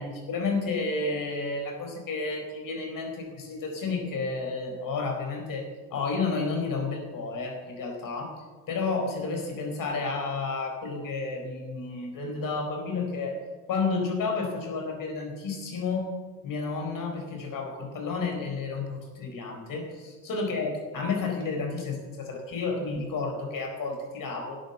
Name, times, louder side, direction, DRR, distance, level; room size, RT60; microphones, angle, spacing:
voice 1, 0.0-8.3 8.7-13.4 13.7-16.1 16.4-19.9 20.2-24.6, left 4 dB, 45° left, 3 dB, 4.5 m, -31 dB
12.5 x 9.0 x 6.9 m, 1.3 s
hypercardioid pair, 70°, 47 cm